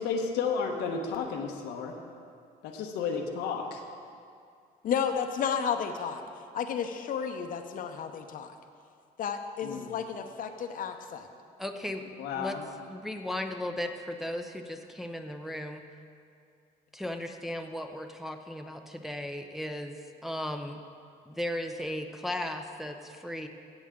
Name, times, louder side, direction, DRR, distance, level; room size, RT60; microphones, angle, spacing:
voice 1, 0.0-1.9 2.6-3.8 9.6-9.9 12.2-12.6, left 5 dB, 90° left, 2 dB, 1.1 m, -32 dB
voice 2, 4.8-6.2 6.5-8.5 9.2-11.3, left 7 dB, 55° left, 7 dB, 0.8 m, -32 dB
voice 3, 11.6-12.0 12.3-12.6 12.9-15.8 16.9-20.0 20.2-20.8 21.3-23.5, left 1 dB, ahead, 4 dB, 0.6 m, -36 dB
16.0 x 7.2 x 3.7 m, 2.4 s
cardioid pair, 110°, 17 cm